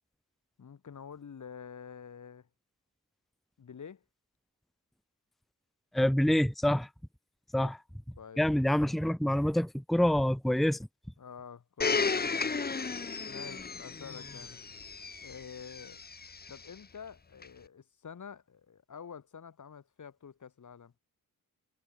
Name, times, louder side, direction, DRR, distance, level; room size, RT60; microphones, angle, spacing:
voice 1, 0.6-2.5 3.6-4.0 7.6-7.8 8.2-8.4 11.2-12.6 13.3-14.6 15.2-16.0 16.5-20.9, left 7 dB, 55° left, 7.6 m, -48 dB
voice 2, 5.9-6.9 7.5-7.7 8.4-10.8, left 1 dB, ahead, 1.0 m, -26 dB
Domestic sounds home sounds, 11.8-16.6 17.4-17.5, left 4 dB, 25° left, 1.4 m, -34 dB
wide cardioid pair, 165°, 35 cm